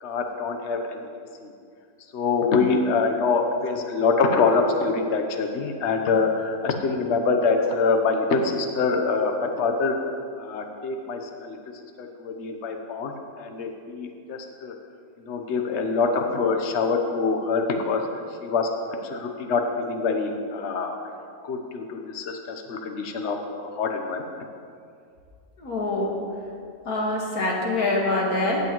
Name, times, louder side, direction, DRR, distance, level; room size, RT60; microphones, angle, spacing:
voice 1, 0.0-1.1 2.1-10.0 10.4-11.6 12.0-14.7 15.2-18.0 18.4-18.7 19.0-21.0 21.4-24.3, left 4 dB, 50° left, 4 dB, 1.1 m, -25 dB
voice 2, 25.6-26.1 26.9-28.6, left 2 dB, 65° left, -2 dB, 2.2 m, -25 dB
16.0 x 8.3 x 3.1 m, 2.3 s
omnidirectional pair, 1.7 m